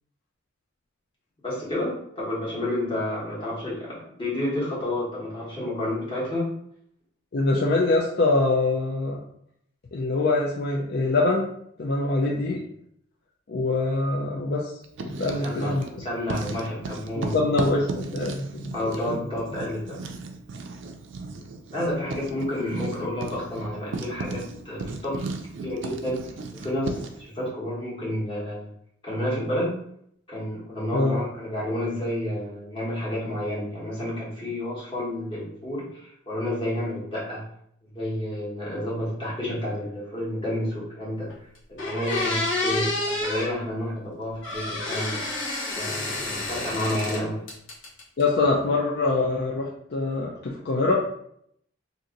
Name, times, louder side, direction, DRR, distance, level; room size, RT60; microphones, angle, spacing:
voice 1, 1.4-6.5 15.3-17.4 18.7-20.0 21.7-25.3 25.6-26.2 26.5-28.7 29.0-29.7 30.3-37.5 37.8-41.3 41.7-45.2 45.7-47.4, left 1 dB, 25° left, -7 dB, 1.3 m, -30 dB
voice 2, 7.3-9.2 9.9-11.5 11.8-12.6 13.5-14.7 15.0-15.8 17.2-18.7 19.1-19.2 30.9-31.2 48.2-51.0, left 2 dB, 55° left, -2 dB, 0.4 m, -24 dB
Writing, 14.8-16.0 16.3-27.2, right 3 dB, 70° right, 0.4 m, -35 dB
sound 1, 41.3-41.4 41.8-43.5 44.4-47.2 47.5-48.2, left 2 dB, 75° left, 1.0 m, -29 dB
2.8 x 2.6 x 3.7 m, 0.70 s
head